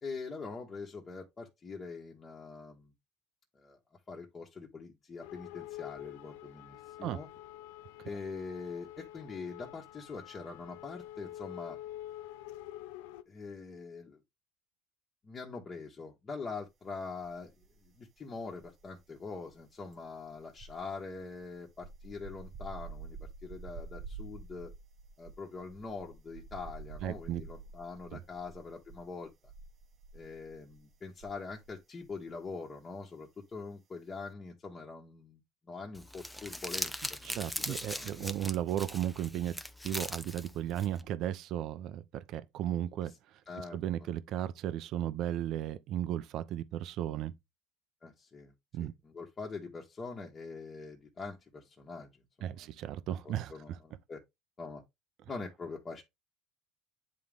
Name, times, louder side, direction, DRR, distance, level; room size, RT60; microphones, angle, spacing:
voice 1, 0.0-2.9 3.5-3.8 4.1-7.3 8.0-11.8 13.3-14.2 15.2-17.5 17.8-24.7 25.2-29.3 30.1-36.9 37.3-37.4 37.7-38.3 43.0-43.1 43.5-43.8 48.0-48.5 48.8-52.1 52.4-52.7 53.2-54.2 54.6-54.8 55.3-56.0, left 4 dB, 25° left, 1.5 m, -43 dB
sound 1, 5.2-13.2, left 14 dB, 85° left, 0.5 m, -47 dB
sound 2, 17.2-18.0 18.2-31.8 32.0-32.3, right 4 dB, 35° right, 1.0 m, -49 dB
voice 2, 27.0-27.4 28.1-28.2 37.3-43.1 43.7-47.3 48.7-48.9 52.4-53.5, right 11 dB, 55° right, 0.7 m, -35 dB
Crumpling crinkling, 35.9-41.0, left 1 dB, 5° left, 0.7 m, -40 dB
9.7 x 3.8 x 3.5 m
cardioid pair, 135°, 0 cm